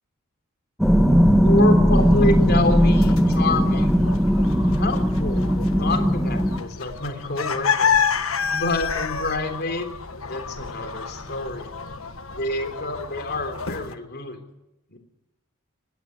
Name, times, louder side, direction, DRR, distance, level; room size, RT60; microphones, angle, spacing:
sound 1, 0.8-6.6, equal, ahead, 1.7 m, -18 dB
voice 1, 1.4-4.0 4.7-8.0 8.4-9.9 10.2-11.7 12.3-14.4 14.9-15.0, left 2 dB, 50° left, 7 dB, 3.5 m, -28 dB
sound 2, 1.9-13.9, left 6 dB, 80° left, 1.5 m, -29 dB
21.0 x 17.0 x 9.5 m, 0.94 s
head